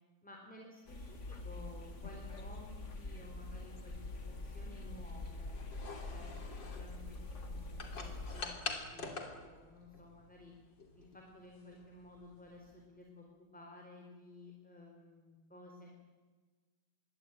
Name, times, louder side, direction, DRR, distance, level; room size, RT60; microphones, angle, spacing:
voice 1, 0.2-5.5 6.1-6.4 6.7-10.5 10.9-15.9, left 1 dB, 5° left, 0 dB, 4.1 m, -55 dB
sound 1, 0.9-8.4, left 2 dB, 40° left, 2.5 m, -45 dB
sound 2, 4.2-12.9, left 4 dB, 90° left, 3.9 m, -47 dB
26.5 x 22.5 x 9.2 m, 1.4 s
omnidirectional pair, 1.9 m